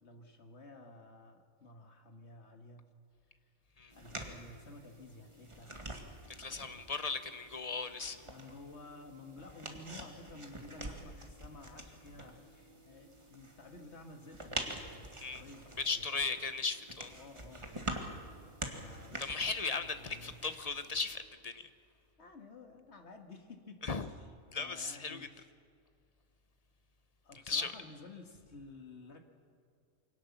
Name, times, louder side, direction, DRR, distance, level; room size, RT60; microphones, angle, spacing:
voice 1, 0.0-2.9 3.9-6.0 6.4-6.9 8.2-15.1 15.3-16.1 17.1-18.4 18.7-19.2 20.0-20.4 22.2-23.8 24.6-25.4 27.2-29.2, left 2 dB, 55° left, 5 dB, 2.0 m, -53 dB
sound 1, 3.9-21.2, right 1 dB, 20° right, 1.9 m, -46 dB
voice 2, 6.3-8.2 15.2-15.4 15.8-17.1 19.2-21.7 23.8-24.1 24.5-25.3 27.5-27.7, left 4 dB, 30° left, 10 dB, 0.9 m, -37 dB
24.5 x 17.5 x 7.1 m, 2.3 s
omnidirectional pair, 1.4 m